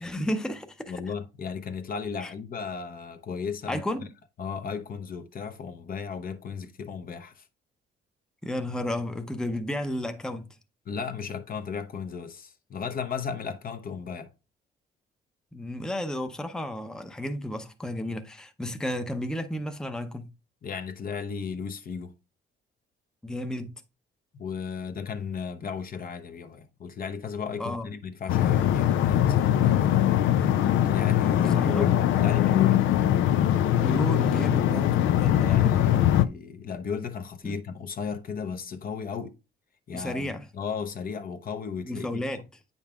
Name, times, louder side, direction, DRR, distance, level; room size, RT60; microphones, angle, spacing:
voice 1, 0.0-0.9 2.2-2.3 3.7-4.1 8.4-10.5 15.5-20.3 23.2-23.7 27.6-27.9 31.4-31.9 33.7-35.8 37.4-37.5 39.9-40.5 41.8-42.4, left 1 dB, 5° left, 0.6 m, -32 dB
voice 2, 0.9-3.8 4.4-7.4 10.9-14.3 20.6-22.1 24.4-32.8 35.4-39.3 39.9-42.4, left 6 dB, 45° left, 0.8 m, -35 dB
sound 1, 28.3-36.3, left 11 dB, 80° left, 0.5 m, -22 dB
8.5 x 5.3 x 2.3 m
cardioid pair, 90°, 20 cm